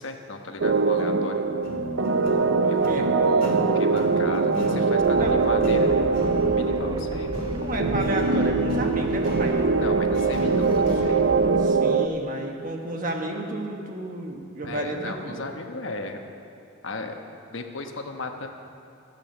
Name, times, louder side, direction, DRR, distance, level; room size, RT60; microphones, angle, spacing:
voice 1, 0.0-1.4 2.7-7.4 9.8-11.3 14.6-16.2 16.8-17.2 17.5-18.5, left 3 dB, 70° left, 4 dB, 1.1 m, -36 dB
sound 1, 0.6-12.1, right 4 dB, 65° right, 0.5 m, -22 dB
sound 2, 1.6-11.2, left 2 dB, 45° left, 2.4 m, -36 dB
voice 2, 2.6-3.1 5.2-5.4 7.5-9.6 11.6-15.4, right 1 dB, 40° right, 2 dB, 1.4 m, -31 dB
sound 3, 4.9-11.7, right 2 dB, 20° right, 0.5 m, -37 dB
14.0 x 8.5 x 7.0 m, 2.7 s
head